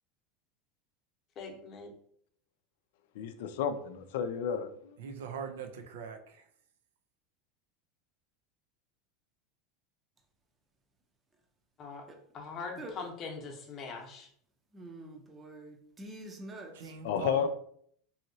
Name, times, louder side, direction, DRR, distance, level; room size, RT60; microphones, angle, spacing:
voice 1, 1.4-1.9 11.8-12.0 12.3-14.3, left 4 dB, 35° left, 0.8 m, -42 dB
voice 2, 3.1-5.0 17.0-17.5, left 7 dB, 75° left, 0.4 m, -32 dB
voice 3, 5.0-6.4 16.8-17.5, right 6 dB, 90° right, 0.5 m, -41 dB
voice 4, 14.7-17.5, right 1 dB, 20° right, 0.6 m, -46 dB
2.9 x 2.7 x 2.7 m
supercardioid pair, 135°, 0 cm